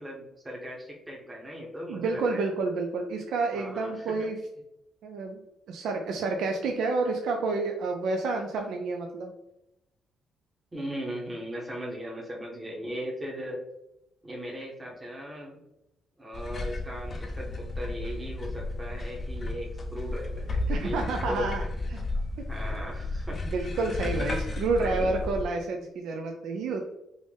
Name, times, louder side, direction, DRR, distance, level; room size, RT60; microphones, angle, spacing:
voice 1, 0.0-2.4 3.5-4.1 10.7-13.6 14.2-15.6 16.2-21.7 22.5-23.4 24.8-25.1, equal, 15° right, -2 dB, 0.9 m, -38 dB
voice 2, 1.9-4.4 5.0-5.4 5.7-9.3 20.7-21.6 22.4-22.5 23.5-26.9, right 3 dB, 80° right, 2 dB, 0.4 m, -29 dB
sound 1, 16.3-25.4, left 2 dB, 40° left, 0.6 m, -33 dB
3.6 x 2.6 x 3.4 m, 0.89 s
cardioid pair, 90°, 0 cm